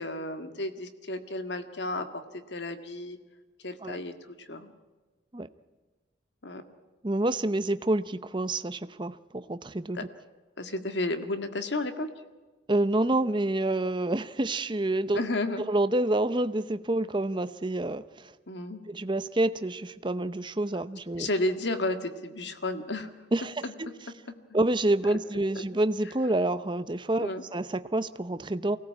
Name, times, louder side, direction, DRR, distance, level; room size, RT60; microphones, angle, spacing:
voice 1, 0.0-2.1 2.5-3.2 3.6-4.7 6.4-6.6 9.9-10.0 10.6-12.1 15.2-15.6 18.5-18.8 21.2-23.1 23.6-23.7 25.1-25.2 27.2-27.4, left 2 dB, 65° left, 8 dB, 1.8 m, -32 dB
voice 2, 7.0-10.1 12.7-15.3 15.7-18.3 18.9-21.3 23.3-23.9 24.5-28.8, right 2 dB, 25° right, 13 dB, 0.7 m, -28 dB
24.0 x 17.5 x 8.4 m, 1.3 s
head